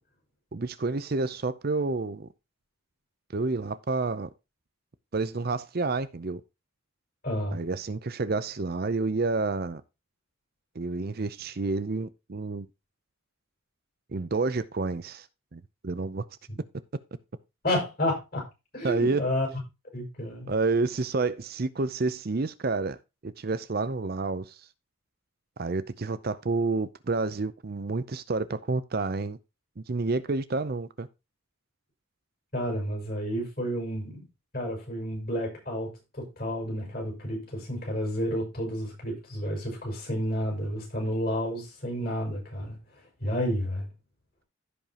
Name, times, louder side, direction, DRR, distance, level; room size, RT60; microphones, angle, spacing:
voice 1, 0.5-2.3 3.3-4.3 5.1-6.4 7.5-9.8 10.7-12.7 14.1-15.3 15.5-16.2 18.8-19.3 20.5-24.7 25.6-29.4 29.8-31.1, right 3 dB, 45° right, 0.6 m, -29 dB
voice 2, 7.2-7.6 16.5-16.6 17.6-18.4 18.7-19.5 19.9-20.5 32.5-34.3 34.5-42.8 43.2-43.9, equal, 45° left, 5.5 m, -31 dB
15.5 x 5.2 x 2.9 m
head